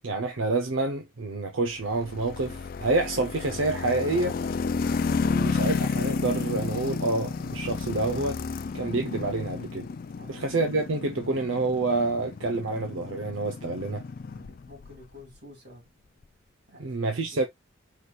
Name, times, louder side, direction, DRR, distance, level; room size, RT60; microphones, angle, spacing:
voice 1, 0.0-4.4 5.1-8.4 8.7-9.9 10.3-14.0 16.8-17.4, right 3 dB, 85° right, 0.7 m, -28 dB
sound 1, 1.8-15.0, left 5 dB, 45° left, 0.3 m, -32 dB
voice 2, 10.2-10.5 14.2-15.9 16.7-17.5, left 1 dB, 55° right, 3.0 m, -50 dB
5.0 x 2.3 x 4.2 m
head